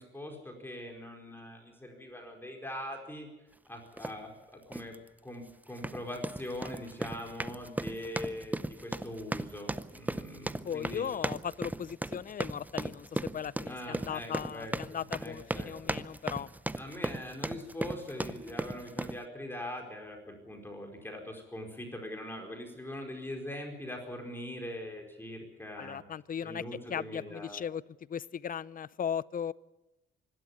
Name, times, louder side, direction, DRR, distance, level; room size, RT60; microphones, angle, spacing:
voice 1, 0.0-3.3 3.7-4.9 5.2-11.1 13.7-15.7 16.1-16.2 16.8-26.0 26.4-27.6, left 1 dB, 10° left, 4.7 m, -42 dB
sound 1, 4.0-4.2 4.7-5.0 5.7-19.2, right 2 dB, 10° right, 0.7 m, -37 dB
voice 2, 10.6-16.5 25.8-27.8 28.1-29.5, left 8 dB, 45° left, 0.7 m, -37 dB
24.5 x 12.5 x 9.8 m
cardioid pair, 90°, 20 cm